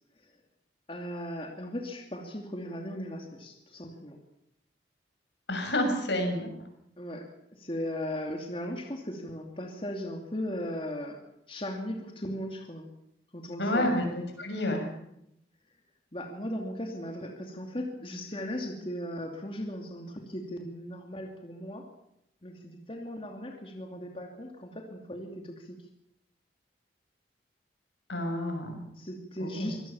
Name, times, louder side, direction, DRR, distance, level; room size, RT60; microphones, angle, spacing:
voice 1, 0.9-4.2 7.0-7.3 7.5-11.2 11.5-12.8 13.3-13.9 16.1-21.9 22.4-25.8 29.0-29.8, equal, 30° left, 2 dB, 2.7 m, -37 dB
voice 2, 5.5-6.5 13.6-14.0 14.4-14.9 28.1-28.8 29.4-29.7, left 1 dB, 85° left, 4 dB, 6.8 m, -29 dB
25.0 x 18.0 x 7.2 m, 0.78 s
head